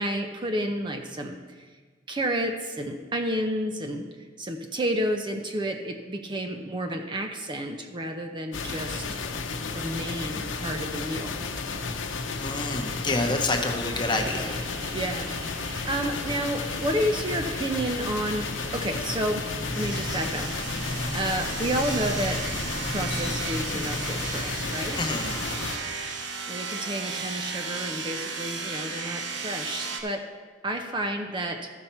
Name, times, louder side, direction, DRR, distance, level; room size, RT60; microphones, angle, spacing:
voice 1, 0.0-1.7 2.1-4.1 4.4-9.2 9.7-11.4 14.9-19.5 19.8-22.4 22.9-25.2 26.5-30.2 30.6-31.7, right 1 dB, 25° right, 4 dB, 0.5 m, -31 dB
sound 1, 8.5-25.8, left 4 dB, 85° left, 0.8 m, -33 dB
voice 2, 12.4-14.6 25.0-25.3, left 2 dB, 25° left, 3 dB, 0.9 m, -28 dB
sound 2, 13.4-30.0, right 5 dB, 70° right, 0.9 m, -36 dB
sound 3, 19.5-26.0, left 1 dB, 65° left, 1.3 m, -37 dB
14.0 x 5.7 x 4.4 m, 1.4 s
head